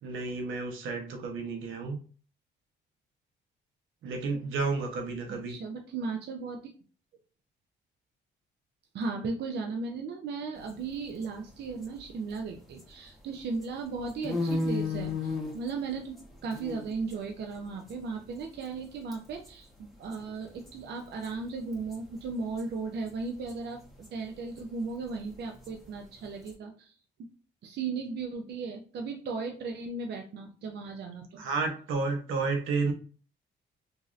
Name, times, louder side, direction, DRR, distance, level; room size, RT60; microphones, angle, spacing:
voice 1, 0.0-2.0 4.0-5.5 31.3-32.9, right 4 dB, 85° right, 3 dB, 0.9 m, -31 dB
voice 2, 5.3-6.7 8.9-26.9 27.6-31.4, right 4 dB, 60° right, 3 dB, 0.5 m, -36 dB
sound 1, 10.6-13.1 13.4-18.8 19.1-19.5 19.8-19.9 20.1-22.7 22.9-26.5, left 3 dB, ahead, 1.4 m, -36 dB
3.0 x 2.6 x 2.5 m, 0.40 s
cardioid pair, 90°, 20 cm